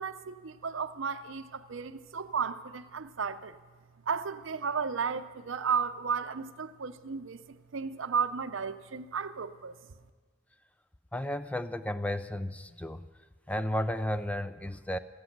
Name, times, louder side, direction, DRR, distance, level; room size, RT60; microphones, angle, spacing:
voice 1, 0.0-3.6 4.1-9.8, right 6 dB, 70° right, 0.7 m, -34 dB
voice 2, 11.1-13.1 13.5-15.0, left 1 dB, 5° left, 0.4 m, -33 dB
16.0 x 14.0 x 5.9 m
head